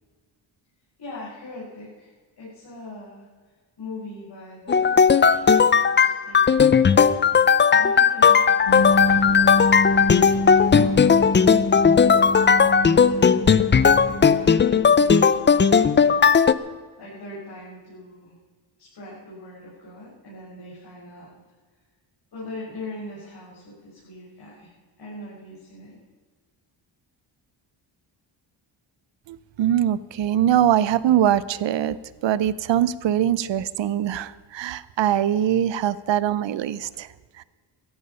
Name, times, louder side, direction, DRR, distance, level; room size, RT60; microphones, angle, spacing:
voice 1, 1.0-3.3 3.8-7.1 7.7-11.4 12.0-13.4 14.1-15.6 17.0-18.4 18.8-21.3 22.3-24.7 25.0-26.0, left 1 dB, 60° left, -8 dB, 6.2 m, -41 dB
sound 1, 4.7-16.5, left 6 dB, 25° left, 0.5 m, -17 dB
sound 2, 8.7-15.1, left 1 dB, 80° left, 3.1 m, -27 dB
voice 2, 29.3-32.0 32.2-37.1 37.4-37.5, right 11 dB, 70° right, 18 dB, 0.8 m, -22 dB
16.5 x 13.5 x 5.7 m, 1.5 s
cardioid pair, 115°, 45 cm